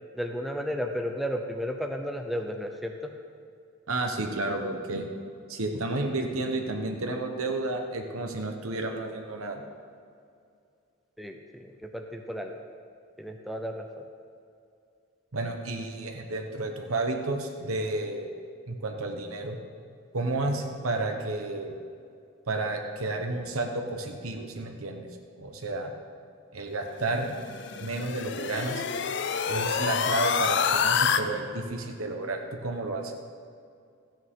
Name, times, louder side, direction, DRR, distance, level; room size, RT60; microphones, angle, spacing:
voice 1, 0.1-3.1 11.2-12.6 13.2-14.1, equal, ahead, 3 dB, 0.6 m, -33 dB
voice 2, 3.9-5.1 5.5-9.6 15.3-18.3 18.7-19.6 20.1-21.8 22.5-25.1 25.4-25.9 26.5-27.3 27.8-28.8 29.5-33.1, right 2 dB, 85° right, 3 dB, 1.2 m, -31 dB
sound 1, 27.2-31.2, left 6 dB, 55° left, 0.4 m, -27 dB
14.0 x 9.1 x 3.8 m, 2.4 s
head